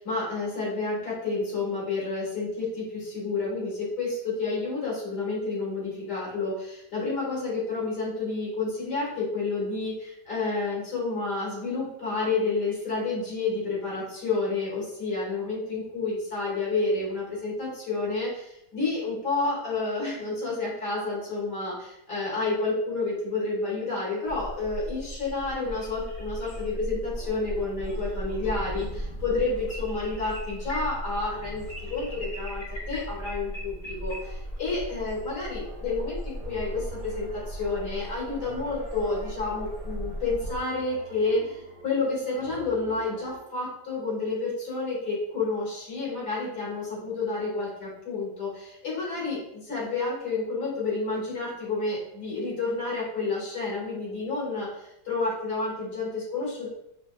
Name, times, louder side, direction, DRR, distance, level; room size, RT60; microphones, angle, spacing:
voice 1, 0.0-56.7, left 3 dB, 75° left, -6 dB, 2.3 m, -30 dB
sound 1, 24.3-40.6, equal, 40° left, 0.5 m, -37 dB
sound 2, 26.5-43.4, right 2 dB, 75° right, 0.5 m, -48 dB
5.5 x 2.2 x 2.4 m, 0.81 s
omnidirectional pair, 1.8 m